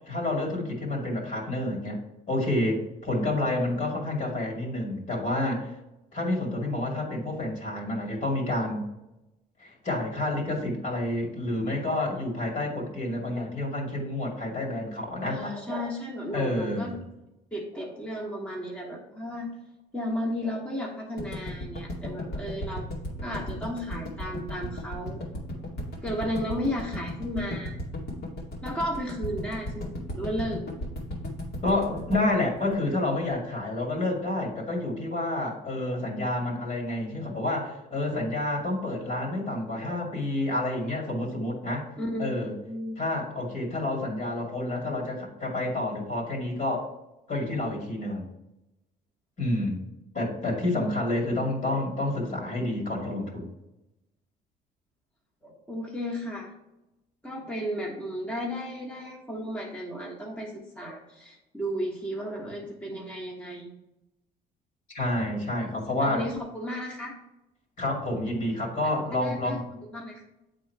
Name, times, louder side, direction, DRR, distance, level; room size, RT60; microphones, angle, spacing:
voice 1, 0.1-2.0 2.3-5.7 6.1-8.8 9.6-15.5 16.3-17.0 31.6-41.8 42.2-42.5 43.0-46.9 47.3-48.3 49.4-49.9 50.1-53.5 64.9-66.2 67.8-69.6, left 1 dB, 45° left, 0 dB, 2.4 m, -29 dB
voice 2, 15.3-16.9 17.5-19.6 19.9-22.9 23.2-25.2 26.0-27.8 28.6-29.9 30.2-30.6 42.0-43.0 55.4-56.5 57.2-63.7 66.0-67.2 69.2-70.2, equal, 10° left, -2 dB, 1.3 m, -34 dB
sound 1, 21.2-33.3, left 1 dB, 70° left, 2.3 m, -35 dB
8.4 x 3.9 x 4.6 m, 0.93 s
cardioid pair, 110°, 17 cm